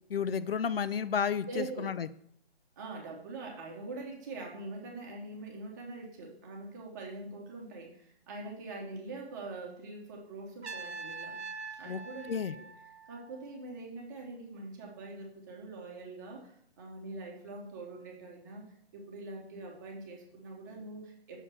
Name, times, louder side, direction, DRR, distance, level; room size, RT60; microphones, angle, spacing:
voice 1, 0.1-2.1 11.9-12.0 12.3-12.5, left 7 dB, 65° left, 15 dB, 0.4 m, -32 dB
voice 2, 1.4-1.9 2.8-11.4 11.8-12.7 13.1-18.7 18.9-21.4, right 3 dB, 20° right, -1 dB, 1.0 m, -43 dB
Trumpet, 10.6-13.6, right 4 dB, 85° right, 0.9 m, -44 dB
6.3 x 4.3 x 6.4 m, 0.68 s
figure-of-eight pair, 155°, 32 cm